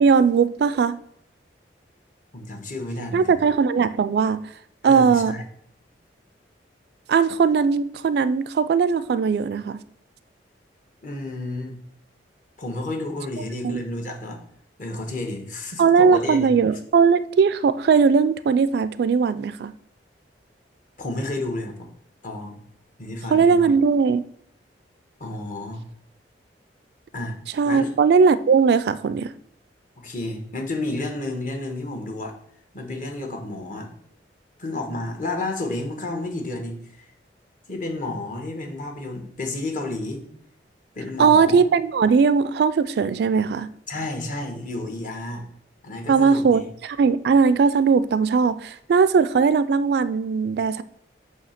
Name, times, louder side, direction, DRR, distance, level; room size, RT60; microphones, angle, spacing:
voice 1, 0.0-1.0 3.1-4.4 4.8-5.4 7.1-9.8 13.6-13.8 15.8-19.7 23.3-24.3 27.6-29.3 41.2-43.7 46.1-50.8, right 5 dB, 60° right, 0.3 m, -19 dB
voice 2, 2.3-3.5 4.8-5.4 11.0-11.8 12.6-14.4 14.8-16.5 21.0-21.9 22.2-22.6 23.0-23.7 25.2-25.9 27.1-27.3 27.6-27.9 30.0-32.4 32.7-33.9 34.6-37.1 37.7-40.2 40.9-41.6 43.9-45.5 45.8-46.7, left 2 dB, 45° left, 1.2 m, -31 dB
8.1 x 2.8 x 5.8 m
head